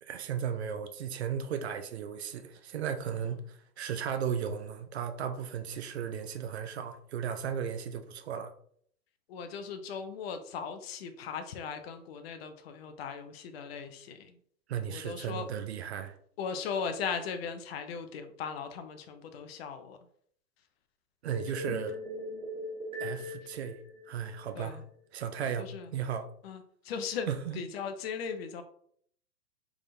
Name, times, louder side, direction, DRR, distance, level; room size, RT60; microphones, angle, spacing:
voice 1, 0.0-8.5 14.7-16.2 21.2-22.0 23.0-23.8 24.1-24.8 25.1-26.3 27.3-27.6, right 8 dB, 45° right, 0.5 m, -35 dB
voice 2, 9.3-14.4 14.9-15.5 16.4-20.0 24.5-24.8 25.6-25.9 26.4-27.3 27.5-28.6, left 6 dB, 40° left, 0.5 m, -38 dB
sound 1, 21.3-24.6, left 1 dB, 10° right, 0.9 m, -40 dB
3.6 x 3.4 x 2.6 m
figure-of-eight pair, 115°, 49 cm